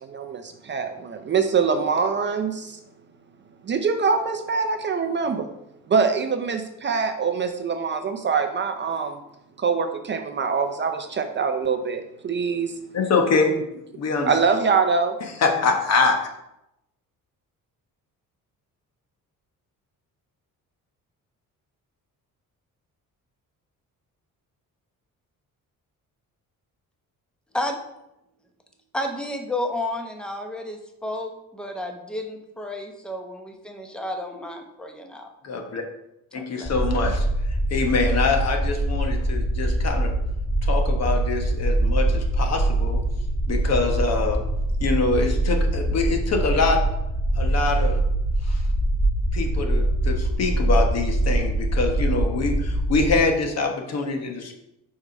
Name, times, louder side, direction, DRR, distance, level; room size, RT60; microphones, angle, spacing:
voice 1, 0.0-2.8 3.6-5.5 5.9-9.2 9.6-12.7 14.3-15.2, right 5 dB, 35° right, 6 dB, 0.5 m, -24 dB
voice 2, 12.9-13.5 14.0-14.4 15.2-16.2 35.4-35.8 36.3-37.3 37.7-40.1 40.6-43.0 43.5-44.4 44.8-46.8 47.4-48.0 48.4-48.6 49.3-54.7, left 4 dB, 50° left, 4 dB, 1.2 m, -24 dB
voice 3, 28.9-35.3 36.3-36.7, left 1 dB, 5° left, 3 dB, 0.8 m, -31 dB
sound 1, 36.6-53.2, right 1 dB, 25° left, 2.5 m, -23 dB
5.2 x 4.8 x 5.2 m, 0.85 s
cardioid pair, 135°, 34 cm